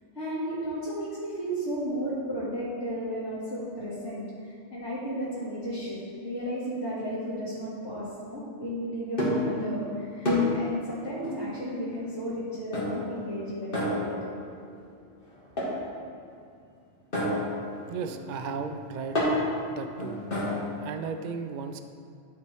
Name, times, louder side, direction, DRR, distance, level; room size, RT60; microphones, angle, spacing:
voice 1, 0.1-14.1, equal, 65° left, -13 dB, 2.2 m, -34 dB
sound 1, 9.2-9.6 10.3-10.7 11.2-11.5 12.7-13.2 13.7-14.5 15.6-15.9 17.1-20.7, left 1 dB, 45° left, 1.9 m, -29 dB
voice 2, 17.9-19.2 19.7-20.2 20.8-21.8, right 5 dB, 70° right, 8 dB, 0.4 m, -35 dB
11.0 x 4.4 x 4.6 m, 2.4 s
omnidirectional pair, 1.3 m